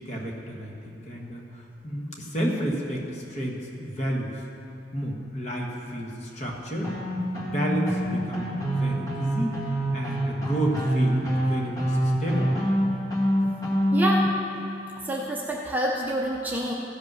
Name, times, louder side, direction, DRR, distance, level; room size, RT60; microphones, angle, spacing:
voice 1, 0.1-4.4 4.9-6.9 7.4-9.5 9.9-12.6, right 1 dB, 40° left, -1 dB, 1.4 m, -31 dB
sound 1, 6.8-14.2, equal, 20° left, 2.2 m, -25 dB
voice 2, 13.9-14.3 15.0-16.7, right 1 dB, 10° right, -2 dB, 0.6 m, -27 dB
15.0 x 5.3 x 6.2 m, 3.0 s
head